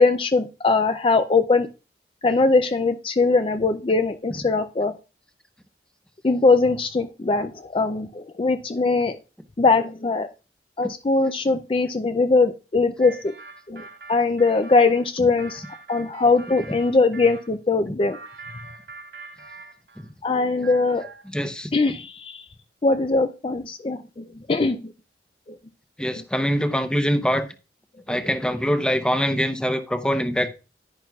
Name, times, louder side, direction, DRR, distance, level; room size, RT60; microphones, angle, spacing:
voice 1, 0.0-1.7 2.2-5.0 6.2-9.2 9.6-10.3 10.8-13.3 13.7-13.8 14.1-15.6 15.9-18.2 20.2-21.1 21.7-22.5 22.8-24.9 25.5-25.6 26.1-26.2 28.1-28.3, left 3 dB, 30° left, 0.4 m, -21 dB
sound 1, 13.0-17.5 18.0-20.1 20.4-21.3, right 3 dB, 80° right, 2.6 m, -43 dB
voice 2, 21.3-21.7 26.0-27.5 28.1-30.5, equal, 5° left, 0.8 m, -23 dB
10.5 x 10.5 x 2.3 m
head